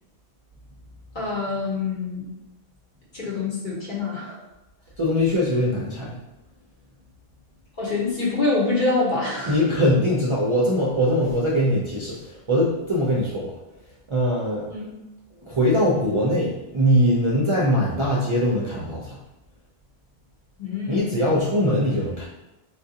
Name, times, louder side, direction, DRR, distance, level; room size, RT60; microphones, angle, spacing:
voice 1, 1.1-2.2 3.1-4.4 7.8-9.6 14.7-14.9 20.6-21.4, left 3 dB, 55° left, -5 dB, 1.0 m, -25 dB
voice 2, 5.0-6.2 9.5-13.5 14.1-14.7 15.4-19.2 20.9-22.3, equal, 45° right, -5 dB, 0.4 m, -22 dB
3.8 x 2.4 x 2.7 m, 0.96 s
omnidirectional pair, 1.1 m